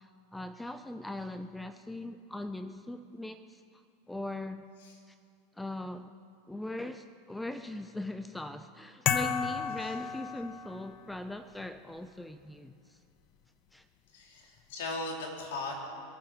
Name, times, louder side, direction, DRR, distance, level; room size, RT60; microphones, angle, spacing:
voice 1, 0.0-4.7 5.1-5.2 5.5-6.1 6.5-13.0 13.7-13.9, left 1 dB, 5° left, 10 dB, 0.7 m, -40 dB
sound 1, 9.0-11.0, left 8 dB, 50° left, 1.0 m, -32 dB
voice 2, 14.1-15.7, left 3 dB, 70° left, 0 dB, 3.9 m, -38 dB
24.5 x 9.0 x 6.5 m, 2.4 s
hypercardioid pair, 90°, 0 cm